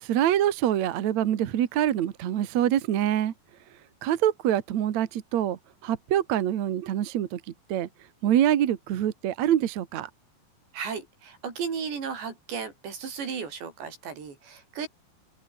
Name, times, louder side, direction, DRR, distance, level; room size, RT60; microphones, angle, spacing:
voice 1, 0.0-3.3 4.0-7.4 7.7-7.9 8.2-10.1, right 11 dB, 60° right, 2.1 m, -25 dB
voice 2, 10.7-14.9, right 6 dB, 80° right, 7.4 m, -35 dB
omnidirectional pair, 4.9 m